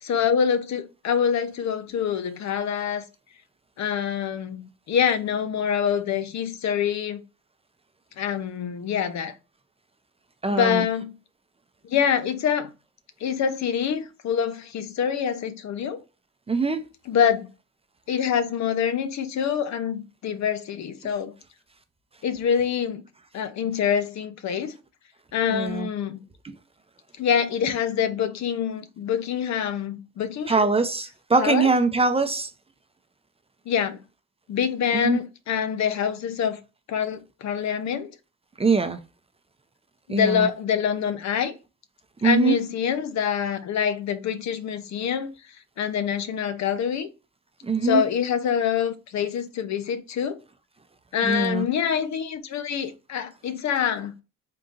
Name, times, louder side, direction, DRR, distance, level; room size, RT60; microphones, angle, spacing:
voice 1, 0.0-3.0 3.8-7.2 8.2-9.3 10.5-11.1 11.8-12.7 13.2-16.0 17.1-17.5 18.1-21.3 22.2-23.0 23.3-24.8 25.3-26.2 27.2-30.7 31.4-31.7 33.7-34.0 34.5-36.6 36.9-38.1 40.1-41.6 42.2-45.3 45.8-47.1 47.8-50.4 51.1-54.1, left 8 dB, 65° left, 0.8 m, -25 dB
voice 2, 10.4-10.8 16.5-16.8 25.5-25.9 26.4-26.6 30.5-32.5 34.9-35.2 38.6-39.0 40.1-40.5 42.2-42.6 47.6-48.0 51.2-51.6, right 4 dB, 20° right, 0.6 m, -22 dB
3.7 x 2.7 x 3.8 m
cardioid pair, 90°, 30 cm